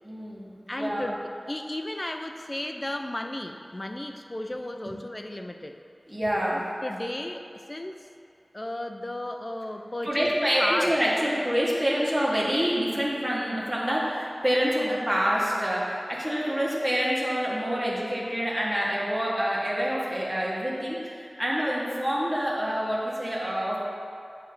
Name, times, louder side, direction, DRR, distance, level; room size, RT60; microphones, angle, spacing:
voice 1, 0.0-1.1 6.1-6.6 10.0-23.8, equal, 10° right, -6 dB, 1.7 m, -27 dB
voice 2, 0.7-5.8 6.5-8.1 8.5-11.0, left 1 dB, 30° left, 5 dB, 0.5 m, -34 dB
9.2 x 3.3 x 6.7 m, 2.4 s
wide cardioid pair, 60°, 0 cm